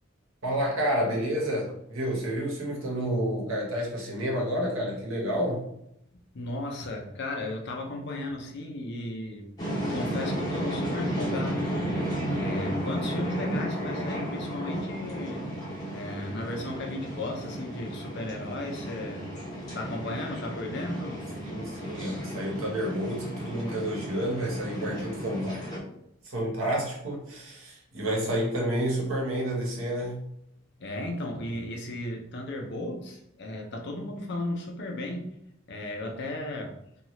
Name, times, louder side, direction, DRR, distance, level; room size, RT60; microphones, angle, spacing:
voice 1, 0.4-5.6 21.4-25.6 26.2-30.2, equal, 85° right, -2 dB, 1.0 m, -30 dB
voice 2, 6.3-9.5 9.9-11.9 12.3-15.5 15.9-19.3 19.7-21.3 30.8-35.4 35.7-36.8, left 1 dB, 55° left, 2 dB, 0.6 m, -35 dB
sound 1, 9.6-25.8, equal, 20° left, 0.8 m, -33 dB
2.8 x 2.4 x 3.0 m, 0.77 s
head